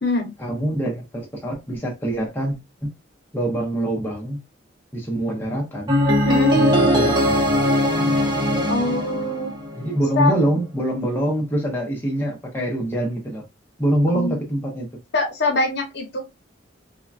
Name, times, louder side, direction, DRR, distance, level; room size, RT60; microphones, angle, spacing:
voice 1, 0.4-2.6 2.8-2.9 3.3-4.4 4.9-6.0 6.5-7.5 9.7-13.4 13.8-14.9, right 1 dB, 10° left, 0.7 m, -24 dB
sound 1, 5.9-10.0, equal, 25° right, 0.8 m, -20 dB
voice 2, 6.2-6.6 8.7-9.5 10.2-10.3 14.1-14.3 15.1-16.2, left 2 dB, 60° left, 0.9 m, -23 dB
3.6 x 2.2 x 2.4 m
head